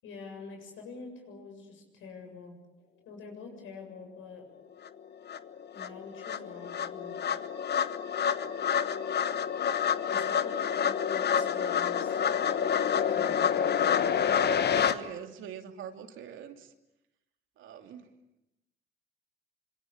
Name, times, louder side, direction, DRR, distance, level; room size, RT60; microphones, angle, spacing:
voice 1, 0.0-2.6 3.1-4.5 5.7-7.1 10.1-12.2 13.1-13.6, left 4 dB, 85° left, 3 dB, 7.6 m, -46 dB
sound 1, 4.8-4.9 5.3-14.9, left 8 dB, 55° left, 1.3 m, -28 dB
voice 2, 9.9-10.4 10.7-10.9 13.5-13.8 14.2-16.7 17.6-18.1, right 8 dB, 80° right, 6 dB, 2.8 m, -44 dB
25.5 x 23.5 x 8.8 m, 0.91 s
cardioid pair, 90°, 20 cm